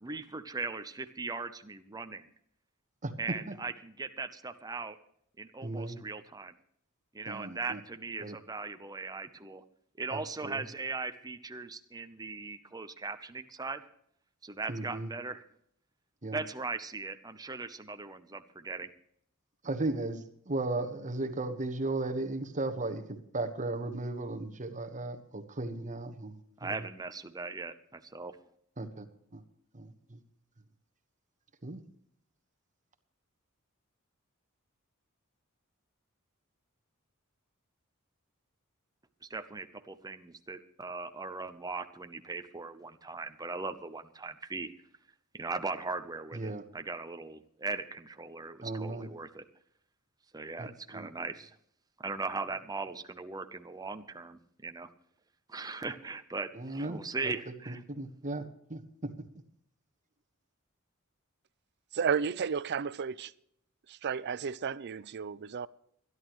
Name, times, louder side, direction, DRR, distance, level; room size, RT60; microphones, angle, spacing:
voice 1, 0.0-2.3 3.2-5.0 5.4-6.5 7.1-9.6 10.0-13.8 14.4-15.4 16.3-18.9 26.6-28.4 39.2-44.7 45.3-49.5 50.3-51.6 52.0-54.9 55.5-57.8, right 3 dB, 20° right, 0.7 m, -39 dB
voice 2, 3.0-3.5 5.6-6.0 7.3-7.8 8.2-8.4 10.1-10.6 14.7-15.1 16.2-16.4 19.6-26.8 28.8-29.1 29.3-29.4 29.7-30.2 31.6-31.8 46.3-46.6 48.6-49.1 50.6-51.1 56.5-57.0 57.2-57.3 57.7-58.4 58.7-59.1, right 2 dB, 35° right, 1.3 m, -36 dB
voice 3, 61.9-63.3 63.9-65.7, right 6 dB, 50° right, 0.5 m, -32 dB
24.5 x 11.0 x 3.1 m
head